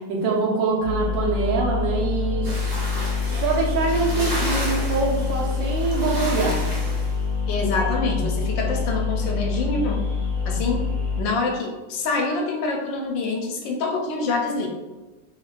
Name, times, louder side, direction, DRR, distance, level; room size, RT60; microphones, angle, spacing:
voice 1, 0.1-2.8 3.3-6.6, right 4 dB, 75° right, -1 dB, 1.5 m, -24 dB
sound 1, 0.8-11.2, left 5 dB, 30° left, 1.2 m, -26 dB
sound 2, 2.4-7.1, equal, 30° right, 0.3 m, -32 dB
voice 2, 7.5-10.0 10.5-10.8 11.2-14.7, left 3 dB, 75° left, 2 dB, 1.2 m, -26 dB
4.5 x 3.0 x 2.4 m, 1.2 s
omnidirectional pair, 2.2 m